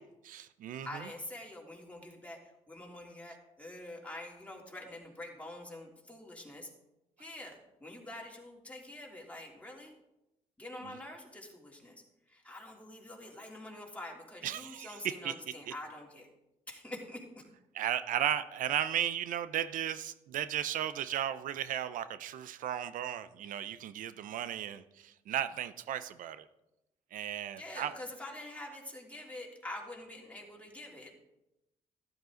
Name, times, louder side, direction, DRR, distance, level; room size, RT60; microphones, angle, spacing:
voice 1, 0.3-1.1 10.8-11.0 14.4-15.3 15.7-15.8 17.7-26.4 27.1-27.9, right 10 dB, 75° right, 13 dB, 0.6 m, -35 dB
voice 2, 0.8-6.7 7.2-9.9 10.6-11.9 12.3-16.3 16.7-17.2 27.6-31.1, left 1 dB, 10° left, -2 dB, 3.3 m, -46 dB
12.5 x 11.0 x 3.9 m, 0.91 s
supercardioid pair, 70°, 14 cm